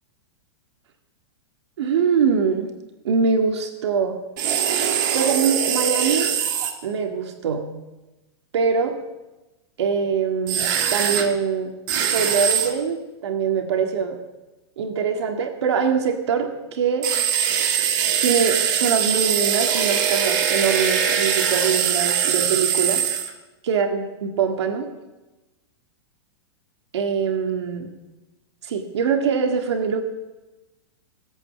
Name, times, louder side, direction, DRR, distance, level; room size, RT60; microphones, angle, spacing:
voice 1, 1.8-2.7 3.0-4.2 4.9-6.3 6.8-7.6 8.5-8.9 9.8-11.7 12.1-14.2 14.8-17.1 18.2-23.0 23.6-24.9 26.9-27.9 28.6-30.0, right 6 dB, 75° right, 3 dB, 1.9 m, -23 dB
sound 1, 4.4-6.7 10.5-11.3 11.9-12.7 17.0-23.3, right 8 dB, 45° right, 2.0 m, -22 dB
18.5 x 8.3 x 7.3 m, 1.1 s
supercardioid pair, 170°, 14 cm